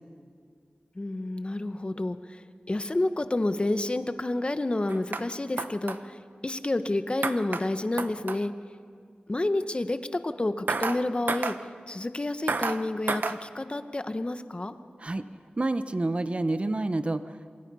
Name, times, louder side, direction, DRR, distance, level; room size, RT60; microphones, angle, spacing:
voice 1, 0.9-8.5 9.3-11.5 11.9-14.7, left 2 dB, 35° left, 10 dB, 1.1 m, -29 dB
sound 1, 4.9-5.2 5.6-6.0 7.2-7.6 8.0-8.4 10.7-11.0 11.3-11.6 12.5-12.8 13.1-13.4, right 4 dB, 75° right, 0.9 m, -29 dB
voice 2, 15.6-17.5, right 2 dB, 40° right, 11 dB, 0.9 m, -28 dB
27.5 x 23.5 x 5.6 m, 2.1 s
wide cardioid pair, 85°, 3 cm